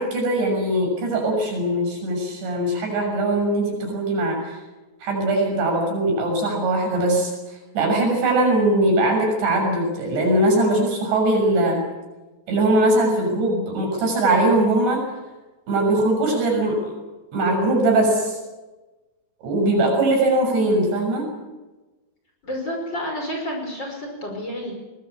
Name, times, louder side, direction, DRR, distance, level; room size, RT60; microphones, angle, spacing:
voice 1, 0.0-4.6 5.0-11.8 12.5-15.0 15.7-16.9 17.3-18.4 19.4-21.3, right 1 dB, 80° right, 1 dB, 9.1 m, -21 dB
voice 2, 22.4-24.7, equal, 25° left, 1 dB, 5.7 m, -30 dB
22.0 x 20.0 x 8.6 m, 1.2 s
omnidirectional pair, 5.0 m